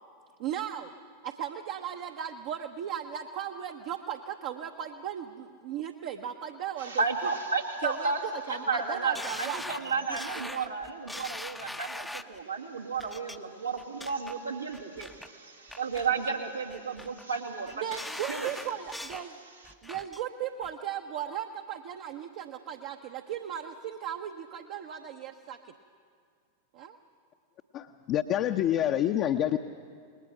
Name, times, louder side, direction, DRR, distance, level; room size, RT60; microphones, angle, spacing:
voice 1, 0.4-0.9 1.2-7.0 7.8-10.6 17.8-19.4 19.8-25.6 26.7-27.0, right 9 dB, 50° right, 4 dB, 0.9 m, -37 dB
voice 2, 6.8-8.2 8.5-18.0 18.3-18.5 19.7-19.8, right 4 dB, 85° right, 0 dB, 2.1 m, -33 dB
sound 1, 9.2-12.4 13.0-13.4 13.8-14.3 14.7-15.3 15.7-16.4 16.7-17.2 17.7-19.3 19.6-20.2 20.6-20.7, left 1 dB, 5° left, 0.7 m, -41 dB
voice 3, 27.7-29.6, left 11 dB, 35° left, 4 dB, 0.7 m, -27 dB
28.0 x 20.5 x 5.9 m, 2.2 s
figure-of-eight pair, 90°, 0 cm